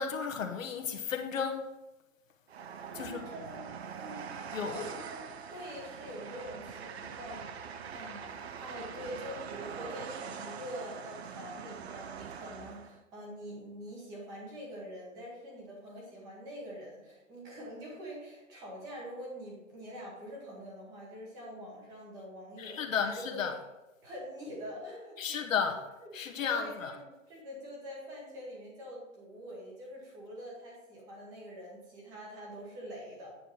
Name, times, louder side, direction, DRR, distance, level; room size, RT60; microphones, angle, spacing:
voice 1, 0.0-1.7 2.9-3.2 4.5-4.8 22.6-23.5 25.2-25.8 26.1-27.0, left 6 dB, 75° left, 4 dB, 1.1 m, -33 dB
Train, 2.5-13.0, right 7 dB, 50° right, 0.6 m, -43 dB
voice 2, 2.9-5.2 5.5-23.5 24.0-25.5 26.0-26.2 26.5-33.3, equal, 10° right, -3 dB, 1.0 m, -45 dB
9.0 x 4.5 x 4.8 m, 1.0 s
hypercardioid pair, 175°, 40 cm